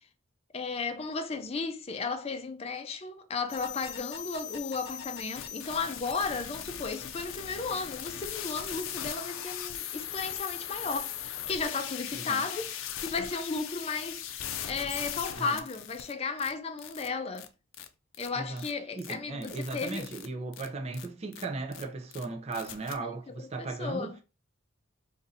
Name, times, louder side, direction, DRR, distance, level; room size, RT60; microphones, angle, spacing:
voice 1, 0.5-12.7 13.0-14.4 14.6-17.5 18.2-20.1 23.0-24.2, left 4 dB, 30° left, 0.4 m, -34 dB
sound 1, 3.5-16.1 16.4-16.5 16.8-17.1 17.4-17.5 17.7-17.9 18.1-18.3 18.6-18.7 19.0-19.1 19.4-20.3 20.5-20.7 20.9-21.1 21.3-21.4 21.7-21.8 22.1-22.2 22.5-23.0, left 9 dB, 85° left, 0.4 m, -39 dB
voice 2, 19.0-24.2, right 3 dB, 30° right, 0.6 m, -37 dB
2.7 x 2.6 x 4.0 m
head